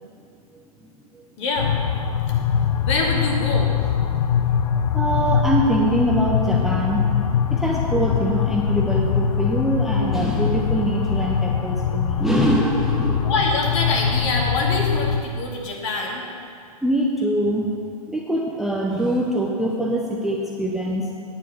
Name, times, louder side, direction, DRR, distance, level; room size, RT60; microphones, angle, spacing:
voice 1, 1.4-1.7 2.5-3.7 13.2-16.2, left 3 dB, 50° left, -1 dB, 2.4 m, -25 dB
sound 1, 1.6-15.2, left 7 dB, 65° left, 0.7 m, -22 dB
voice 2, 4.4-13.2 16.8-17.7 18.1-21.0, right 1 dB, ahead, -2 dB, 0.6 m, -23 dB
9.6 x 8.3 x 5.6 m, 2.4 s
hypercardioid pair, 135°, 20 cm